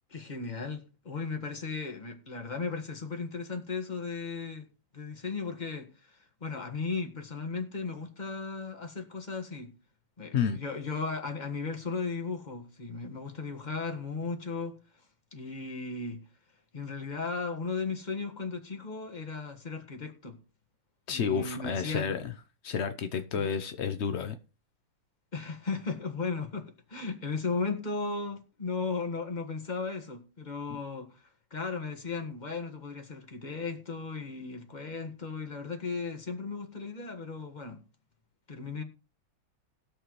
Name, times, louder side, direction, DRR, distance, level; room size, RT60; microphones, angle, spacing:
voice 1, 0.1-4.7 4.9-9.7 10.2-14.7 15.3-16.2 16.7-20.4 21.1-22.2 23.3-23.5 25.3-31.2 31.5-37.8 38.5-38.8, left 4 dB, 25° left, 1.6 m, -36 dB
voice 2, 21.1-22.3 22.6-24.3, left 7 dB, 65° left, 0.6 m, -30 dB
20.0 x 6.7 x 3.1 m
omnidirectional pair, 2.1 m